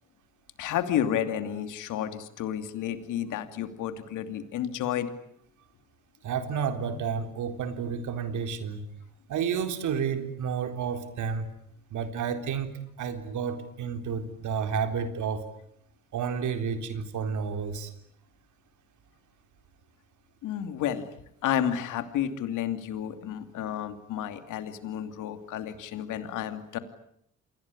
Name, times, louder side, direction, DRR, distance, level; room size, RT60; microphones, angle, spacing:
voice 1, 0.6-5.1 20.4-26.8, left 10 dB, 90° left, 9 dB, 2.8 m, -31 dB
voice 2, 6.2-8.8 9.3-11.5 11.9-15.4 16.1-17.9, right 6 dB, 75° right, 8 dB, 3.9 m, -31 dB
28.5 x 21.0 x 9.9 m, 0.73 s
cardioid pair, 90°, 30 cm